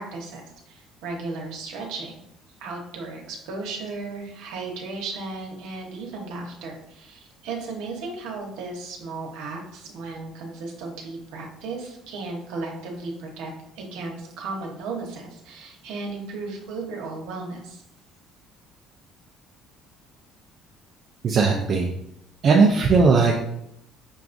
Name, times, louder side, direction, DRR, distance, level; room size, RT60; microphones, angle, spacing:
voice 1, 0.0-2.2 2.6-17.8, right 3 dB, 85° right, 1 dB, 0.8 m, -35 dB
voice 2, 21.2-21.9 22.4-23.5, right 4 dB, 35° right, 1 dB, 0.3 m, -18 dB
5.8 x 2.3 x 2.5 m, 0.79 s
cardioid pair, 170°, 0 cm